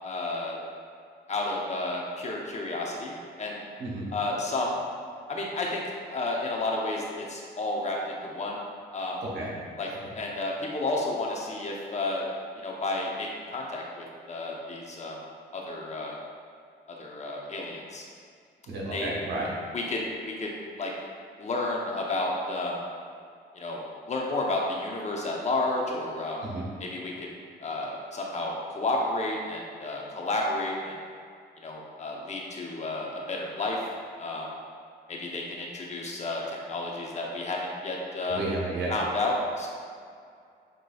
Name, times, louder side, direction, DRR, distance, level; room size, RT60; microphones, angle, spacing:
voice 1, 0.0-0.6 1.3-3.6 4.1-4.8 5.3-5.8 6.1-8.6 8.9-9.2 9.8-9.9 10.1-12.3 12.6-15.2 15.5-16.2 17.0-18.0 18.9-19.1 19.7-20.5 20.8-20.9 21.4-22.8 23.5-26.4 26.8-27.3 27.6-30.9 31.6-33.8 34.2-34.5 35.1-38.4 38.9-39.7, left 2 dB, 40° left, -1 dB, 0.8 m, -31 dB
voice 2, 18.7-19.5 26.4-26.7 38.3-38.9, right 2 dB, 70° right, -4 dB, 1.2 m, -32 dB
7.5 x 3.0 x 2.4 m, 2.2 s
cardioid pair, 100°, 18 cm